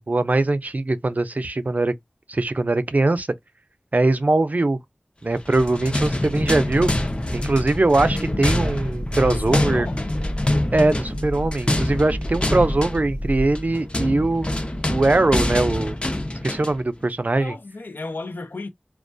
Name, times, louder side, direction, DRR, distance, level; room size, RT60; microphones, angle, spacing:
voice 1, 0.0-1.9 2.3-3.3 3.9-4.8 5.2-6.9 7.3-9.9 10.7-14.5 14.9-16.0 16.4-17.5, right 2 dB, 50° right, 0.4 m, -21 dB
sound 1, 5.4-16.8, left 1 dB, 30° left, 0.6 m, -25 dB
sound 2, 6.0-13.6, equal, 60° left, 0.9 m, -32 dB
voice 2, 9.3-10.1 17.4-18.7, left 3 dB, 85° left, 0.4 m, -33 dB
2.2 x 2.2 x 2.5 m
wide cardioid pair, 45°, 3 cm